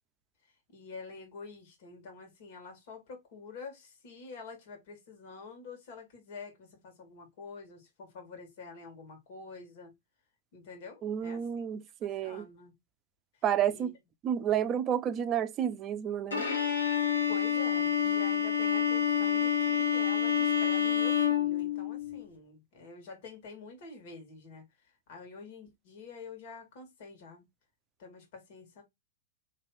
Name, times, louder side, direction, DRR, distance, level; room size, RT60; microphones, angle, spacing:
voice 1, 0.7-9.9 10.5-11.4 12.2-12.7 13.7-13.9 17.3-24.6 25.1-27.4 28.0-28.8, left 4 dB, 55° left, 2.4 m, -47 dB
voice 2, 11.0-12.4 13.4-13.9 14.2-16.4, right 9 dB, 30° right, 0.6 m, -30 dB
Bowed string instrument, 16.3-22.2, left 8 dB, 80° left, 1.5 m, -28 dB
3.4 x 3.1 x 4.4 m
figure-of-eight pair, 105°, 0 cm